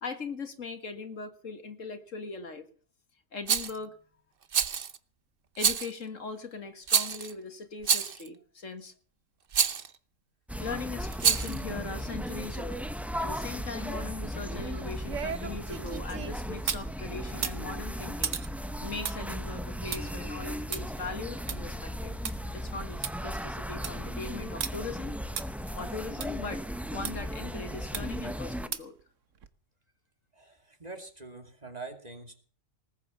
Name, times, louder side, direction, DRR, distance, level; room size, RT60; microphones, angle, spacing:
voice 1, 0.0-2.7 3.3-3.9 5.6-8.9 10.6-18.4 18.8-22.1 22.5-25.2 25.7-26.6 26.9-28.9, left 4 dB, 65° left, 8 dB, 2.1 m, -40 dB
Rattle, 3.5-3.8 4.5-5.0 5.6-6.0 6.9-7.3 7.8-8.3 9.5-9.9 11.1-11.6, right 7 dB, 45° right, 1.0 m, -26 dB
sound 1, 10.5-28.7, equal, ahead, 0.7 m, -36 dB
sound 2, 14.4-16.9 17.3-22.3 22.7-22.8 23.0-23.1 23.6-24.0 24.6-24.7 25.4-25.5 26.2-26.3 27.0-27.1 27.9-28.3 28.7-29.0 29.4-29.5, right 7 dB, 65° right, 1.4 m, -37 dB
voice 2, 30.3-32.4, right 3 dB, 30° right, 5 dB, 2.8 m, -44 dB
19.5 x 8.7 x 7.0 m, 0.43 s
omnidirectional pair, 1.4 m